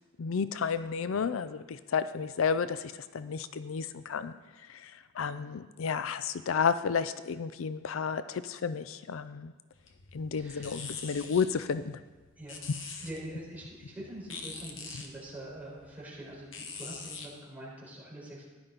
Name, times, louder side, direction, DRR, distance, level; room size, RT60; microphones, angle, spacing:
voice 1, 0.2-4.3 4.7-9.5 10.1-12.0, left 6 dB, 80° left, 13 dB, 0.5 m, -32 dB
sound 1, 9.7-17.3, left 5 dB, 65° left, 1.3 m, -45 dB
voice 2, 10.4-10.7 12.4-12.6 13.0-18.4, right 1 dB, 10° right, -7 dB, 4.4 m, -44 dB
15.0 x 10.5 x 3.9 m, 1.2 s
head